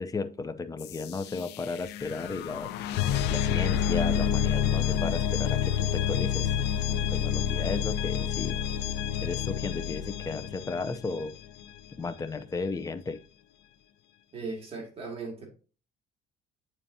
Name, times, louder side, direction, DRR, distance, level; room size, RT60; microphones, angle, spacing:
voice 1, 0.0-3.0 3.3-6.6 7.1-8.6 9.2-11.3 12.0-13.2, left 4 dB, 20° left, 0.6 m, -34 dB
sound 1, 0.8-11.6, left 9 dB, 85° left, 0.5 m, -29 dB
voice 2, 14.3-15.5, right 4 dB, 35° right, 2.2 m, -37 dB
8.7 x 4.4 x 2.7 m
cardioid pair, 110°, 17 cm